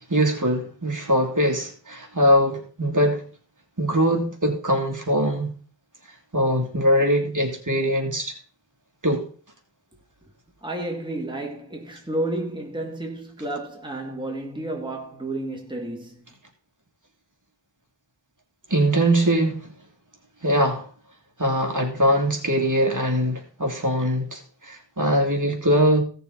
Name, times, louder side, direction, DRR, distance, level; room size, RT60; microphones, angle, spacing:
voice 1, 0.1-3.2 3.8-5.5 6.3-8.3 9.0-9.2 18.7-19.7 20.4-20.8 21.4-26.0, equal, 40° right, 2.5 m, -22 dB
voice 2, 10.6-16.2, right 1 dB, 10° right, 2.1 m, -31 dB
16.5 x 6.7 x 4.0 m
wide cardioid pair, 55°, 47 cm